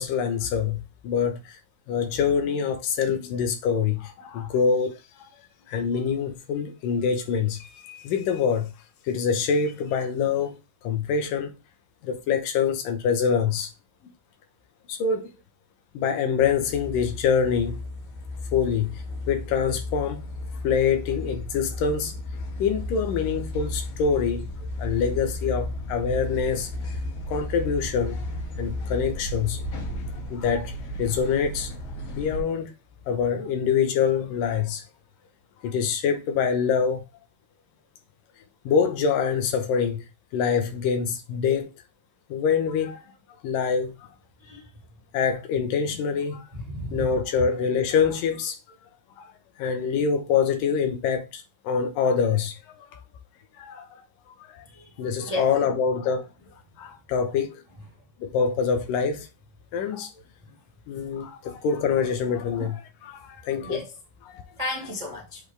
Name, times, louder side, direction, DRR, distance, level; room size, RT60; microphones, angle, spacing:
voice 1, 0.0-1.6 1.9-5.0 5.7-8.7 9.0-10.6 10.8-11.5 12.0-13.7 14.9-15.3 15.9-17.8 18.5-20.3 20.6-22.1 22.6-24.5 24.8-26.7 27.3-28.2 28.6-29.6 30.3-30.7 31.0-31.7 32.1-32.7 33.1-34.8 35.6-37.0 38.6-40.0 40.3-41.7 42.3-43.1 43.4-44.1 45.1-46.5 46.9-48.6 49.2-49.3 49.6-53.0 53.6-54.0 54.4-54.6 55.0-56.3 56.8-57.6 58.2-59.3 59.7-60.1 60.9-63.8 64.3-64.4, left 6 dB, 85° left, 2.8 m, -25 dB
sound 1, 16.4-32.4, left 1 dB, 65° left, 2.9 m, -34 dB
voice 2, 46.5-47.1 54.7-54.9 55.2-55.5 62.6-62.7 63.6-63.9 64.6-65.4, left 1 dB, 65° right, 0.3 m, -33 dB
7.8 x 4.1 x 3.5 m
omnidirectional pair, 3.8 m